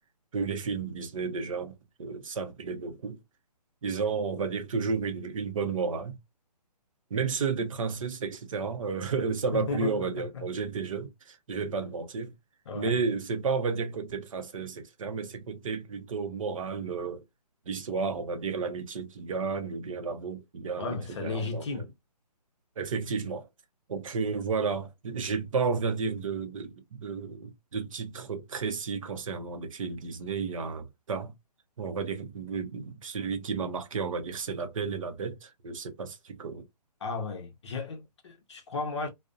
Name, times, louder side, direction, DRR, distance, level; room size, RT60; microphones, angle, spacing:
voice 1, 0.3-3.2 3.8-6.2 7.1-12.3 12.7-17.2 17.7-21.8 22.8-23.5 23.9-31.3 31.8-36.7, right 5 dB, 50° right, 0.6 m, -32 dB
voice 2, 9.5-10.4 12.7-13.0 20.8-21.9 37.0-39.1, left 4 dB, 45° left, 0.7 m, -34 dB
2.5 x 2.1 x 2.4 m
hypercardioid pair, 165°, 21 cm